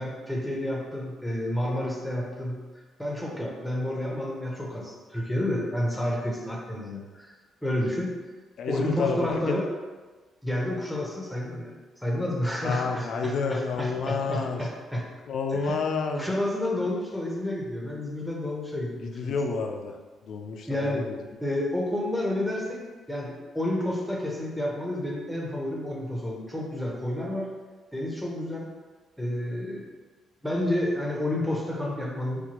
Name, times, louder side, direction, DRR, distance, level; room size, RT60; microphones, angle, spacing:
voice 1, 0.0-2.6 3.0-7.3 7.6-8.1 8.7-9.7 10.4-11.7 12.0-15.0 15.5-15.8 16.1-19.4 20.7-21.1 21.4-22.8 23.1-27.5 27.9-28.7 29.2-29.9 30.4-32.4, left 1 dB, ahead, -3 dB, 0.7 m, -30 dB
voice 2, 8.6-9.6 12.6-14.6 15.3-16.3 19.0-20.0 20.2-21.1, left 4 dB, 70° left, 3 dB, 0.4 m, -29 dB
4.3 x 2.3 x 2.9 m, 1.3 s
cardioid pair, 90°, 0 cm